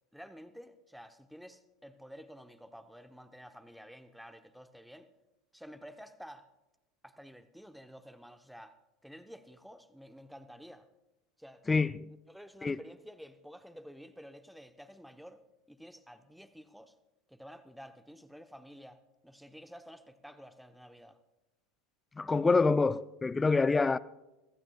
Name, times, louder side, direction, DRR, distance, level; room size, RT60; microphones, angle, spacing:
voice 1, 0.1-5.1 5.5-6.5 7.0-10.9 11.4-11.6 12.3-15.4 15.7-16.9 17.3-21.2, equal, ahead, 0.9 m, -51 dB
voice 2, 11.7-12.0 12.6-12.8 22.2-24.0, left 4 dB, 15° left, 0.4 m, -26 dB
23.5 x 15.0 x 2.4 m
hypercardioid pair, 80°, 0 cm